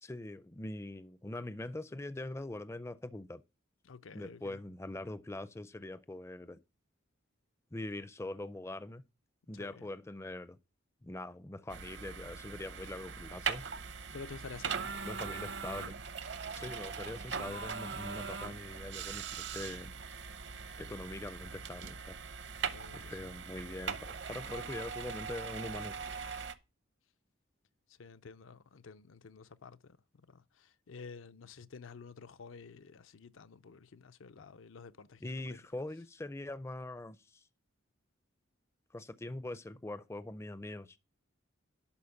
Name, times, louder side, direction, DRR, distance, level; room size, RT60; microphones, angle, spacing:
voice 1, 0.0-3.4 4.1-6.6 7.7-9.0 9.5-10.6 11.0-13.6 15.0-16.0 16.5-19.9 20.8-22.2 22.9-26.2 35.2-37.4 38.9-41.0, left 2 dB, 15° left, 0.4 m, -43 dB
voice 2, 3.8-4.6 9.5-9.9 14.1-15.1 16.5-16.8 22.6-23.2 27.9-35.6, left 5 dB, 75° left, 0.5 m, -51 dB
sound 1, 11.7-26.5, right 6 dB, 55° right, 0.7 m, -41 dB
11.5 x 4.3 x 7.1 m
head